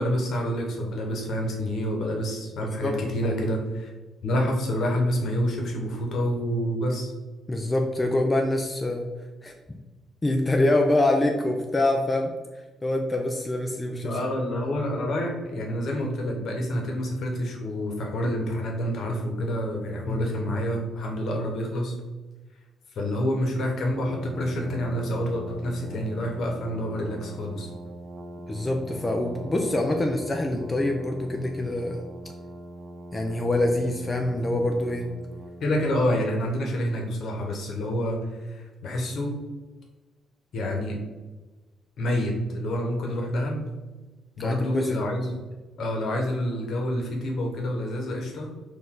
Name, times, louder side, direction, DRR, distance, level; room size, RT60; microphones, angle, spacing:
voice 1, 0.0-3.9 4.2-7.1 14.0-21.9 22.9-27.7 35.6-39.3 40.5-41.0 42.0-43.7 44.4-45.3 45.8-48.5, equal, 65° left, 0 dB, 1.0 m, -28 dB
voice 2, 2.6-3.3 7.5-9.1 9.4-9.5 10.2-12.3 12.8-14.2 20.1-20.3 28.5-32.0 33.1-35.1 44.4-45.0, left 1 dB, 20° left, 2 dB, 0.5 m, -25 dB
Brass instrument, 23.9-36.2, right 2 dB, 80° right, 0.5 m, -41 dB
4.5 x 2.5 x 3.7 m, 1.2 s
cardioid pair, 90°, 0 cm